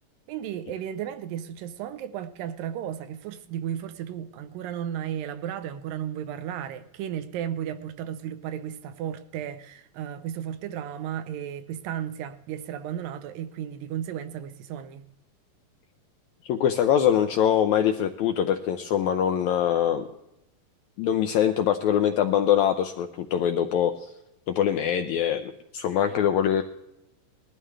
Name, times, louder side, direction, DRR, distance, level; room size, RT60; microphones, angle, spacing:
voice 1, 0.3-15.1, right 10 dB, 85° right, 2.4 m, -34 dB
voice 2, 16.5-20.1 21.0-24.1 24.5-26.6, left 9 dB, 85° left, 1.7 m, -23 dB
20.0 x 13.0 x 3.3 m
omnidirectional pair, 3.9 m